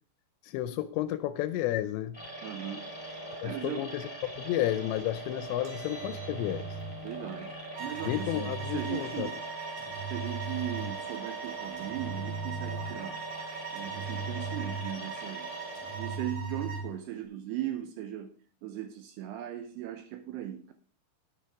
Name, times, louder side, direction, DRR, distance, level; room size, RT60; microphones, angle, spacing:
voice 1, 0.4-2.2 3.4-6.8 8.1-9.3, left 13 dB, 80° left, 2.6 m, -32 dB
sound 1, 2.1-16.2, right 2 dB, ahead, 3.2 m, -42 dB
voice 2, 2.4-2.9 3.4-3.9 7.0-9.4 10.1-13.2 13.7-15.5 15.9-18.3 18.6-20.7, right 11 dB, 80° right, 2.6 m, -38 dB
Engine, 5.5-7.0 7.8-9.0 9.8-11.0 11.8-13.1 13.8-15.1 15.7-17.0, right 4 dB, 40° right, 4.3 m, -39 dB
sound 2, 7.7-16.9, right 6 dB, 60° right, 3.6 m, -42 dB
11.5 x 10.0 x 3.6 m
omnidirectional pair, 5.4 m